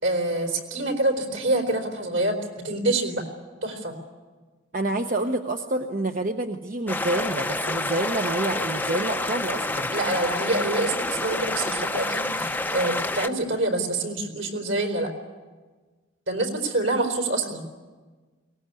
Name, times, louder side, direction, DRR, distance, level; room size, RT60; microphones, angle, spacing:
voice 1, 0.0-2.4 2.6-3.2 3.6-3.9 9.9-15.1 16.3-17.6, right 2 dB, 65° right, 4 dB, 4.2 m, -26 dB
voice 2, 4.7-9.9, right 2 dB, 40° right, 5 dB, 0.9 m, -28 dB
sound 1, 6.9-13.3, left 2 dB, 10° left, 0.7 m, -28 dB
23.0 x 19.5 x 9.8 m, 1.4 s
head